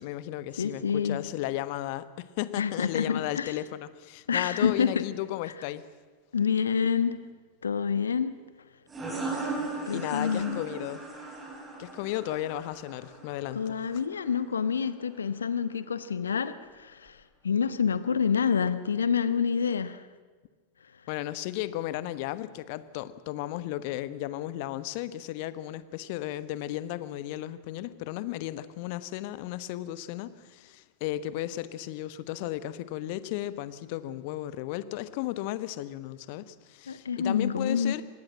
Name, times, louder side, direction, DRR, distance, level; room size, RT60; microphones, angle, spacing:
voice 1, 0.0-5.9 9.9-11.0 11.8-13.8 21.1-38.0, left 14 dB, 45° left, 15 dB, 1.1 m, -34 dB
voice 2, 0.6-1.2 2.6-3.5 4.3-5.0 6.3-7.2 7.6-8.3 9.9-10.6 13.5-17.2 17.4-20.0 36.9-38.0, left 6 dB, 70° left, 14 dB, 1.2 m, -27 dB
sound 1, 8.9-14.3, right 3 dB, 15° right, 5.7 m, -37 dB
25.5 x 20.0 x 7.5 m, 1.4 s
figure-of-eight pair, 90°, 0 cm